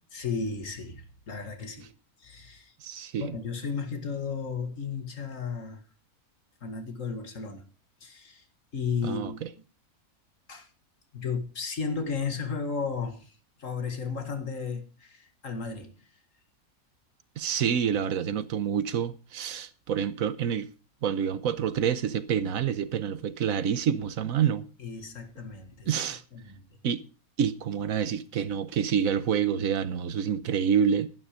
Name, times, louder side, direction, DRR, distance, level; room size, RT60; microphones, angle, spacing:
voice 1, 0.1-1.9 2.2-2.7 3.2-5.8 6.6-7.6 8.0-8.5 8.7-9.5 10.5-10.7 11.1-13.3 13.6-16.1 24.8-26.0 26.3-26.6, left 5 dB, 60° left, 2.1 m, -34 dB
voice 2, 2.8-3.3 9.0-9.5 17.4-20.7 21.0-24.7 25.9-26.2 26.8-27.0 27.4-31.1, right 8 dB, 70° right, 1.3 m, -27 dB
12.0 x 11.0 x 5.0 m
omnidirectional pair, 1.6 m